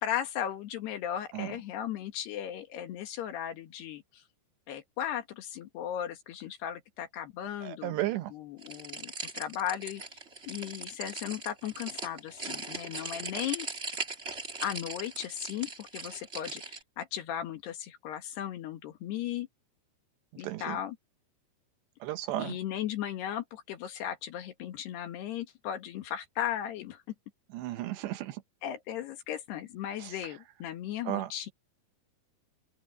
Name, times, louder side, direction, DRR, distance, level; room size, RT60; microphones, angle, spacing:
voice 1, 0.0-4.2 4.7-8.0 8.3-10.2 10.5-13.7 14.6-19.5 20.4-21.0 22.4-27.0 28.6-31.5, left 10 dB, 65° left, 3.5 m, -36 dB
voice 2, 7.6-8.3 20.4-20.8 22.0-22.6 27.5-28.4 30.0-30.1 31.1-31.3, right 15 dB, 75° right, 2.9 m, -34 dB
sound 1, 8.6-16.8, right 3 dB, 25° right, 1.4 m, -40 dB
open air
omnidirectional pair, 5.4 m